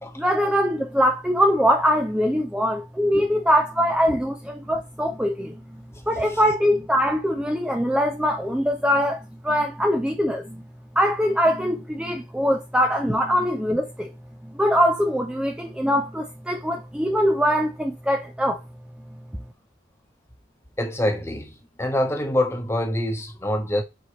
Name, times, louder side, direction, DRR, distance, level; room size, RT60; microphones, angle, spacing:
voice 1, 0.2-5.5 6.1-10.6 11.0-14.1 14.4-18.6, equal, 5° right, 0.7 m, -22 dB
voice 2, 20.8-23.8, left 1 dB, 15° left, 1.3 m, -25 dB
7.7 x 4.8 x 3.2 m
head